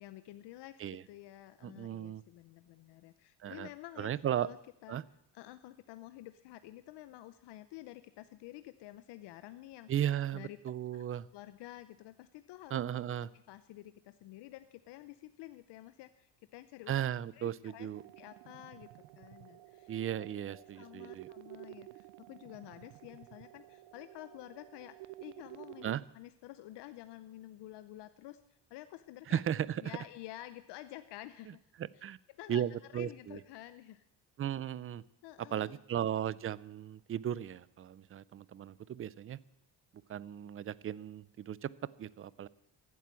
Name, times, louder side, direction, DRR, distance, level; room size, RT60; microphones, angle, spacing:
voice 1, 0.0-0.8 1.1-4.6 4.8-5.0 5.3-9.9 10.3-10.6 10.9-11.0 11.3-12.8 13.3-16.9 17.3-17.9 18.2-18.9 19.1-19.9 20.5-29.4 29.8-31.6 31.9-32.0 32.4-32.6 32.9-34.0 35.2-35.8, left 15 dB, 85° left, 12 dB, 0.8 m, -50 dB
voice 2, 1.6-2.2 3.4-3.7 4.0-4.5 4.9-5.0 9.9-11.3 12.7-13.3 16.9-18.0 19.9-21.3 25.8-26.0 29.3-29.8 32.0-32.2 32.5-33.4 34.4-35.0 35.5-39.4 40.1-41.7 42.0-42.5, right 10 dB, 35° right, 20 dB, 0.5 m, -36 dB
sound 1, 18.0-26.0, right 17 dB, 90° right, 0.6 m, -52 dB
15.0 x 9.5 x 8.3 m, 0.77 s
cardioid pair, 130°, 40 cm